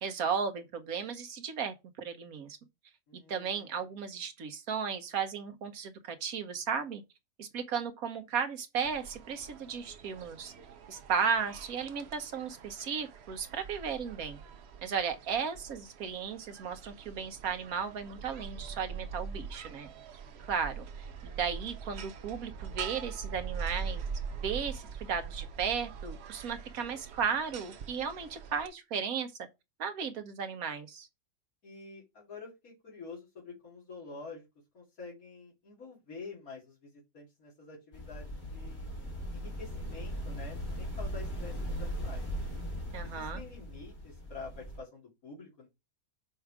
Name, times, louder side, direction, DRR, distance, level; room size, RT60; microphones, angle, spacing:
voice 1, 0.0-2.6 3.1-7.0 7.4-10.5 10.9-14.4 14.8-19.9 20.4-29.3 29.8-31.1 42.9-43.4, right 6 dB, 85° right, 1.5 m, -35 dB
voice 2, 3.1-3.9 31.6-34.5 34.7-38.9 39.3-42.3 43.0-45.7, left 4 dB, 80° left, 3.2 m, -48 dB
sound 1, 8.8-28.7, right 6 dB, 55° right, 0.9 m, -43 dB
sound 2, 37.9-44.8, equal, 60° left, 3.4 m, -38 dB
6.2 x 4.7 x 4.8 m
omnidirectional pair, 1.5 m